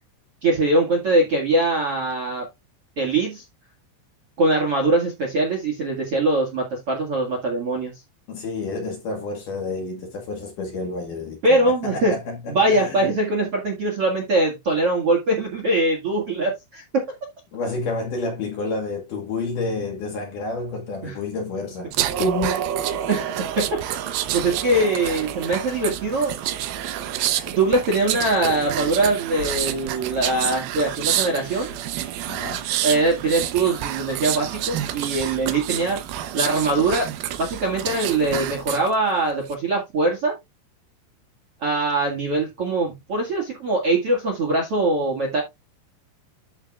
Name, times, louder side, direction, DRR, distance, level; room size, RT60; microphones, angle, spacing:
voice 1, 0.4-2.5 3.0-3.4 4.4-7.9 11.4-12.2 12.5-17.0 21.0-21.1 23.1-23.2 23.6-23.8 24.3-26.4 27.4-31.7 32.8-36.0 36.3-37.1 37.4-40.4 41.6-45.4, right 2 dB, 45° right, 1.9 m, -22 dB
voice 2, 8.3-13.1 17.5-22.7 32.3-32.7, left 2 dB, 55° left, 2.7 m, -29 dB
sound 1, 21.9-38.9 39.3-39.5, right 11 dB, 80° right, 2.2 m, -28 dB
13.0 x 5.5 x 2.4 m
omnidirectional pair, 5.4 m